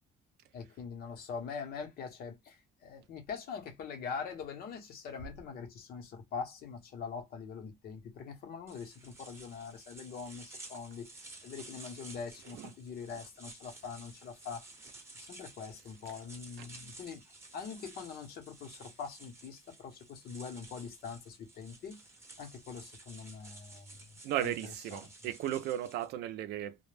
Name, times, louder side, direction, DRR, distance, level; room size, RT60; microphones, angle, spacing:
voice 1, 0.5-14.6 15.2-17.2 17.5-22.0 22.4-24.1 24.4-24.5 24.9-25.0, left 6 dB, 65° left, 0.9 m, -43 dB
sound 1, 8.7-26.1, right 2 dB, 15° right, 0.8 m, -53 dB
voice 2, 24.2-26.8, right 12 dB, 80° right, 0.5 m, -35 dB
2.2 x 2.1 x 3.2 m
cardioid pair, 110°, 17 cm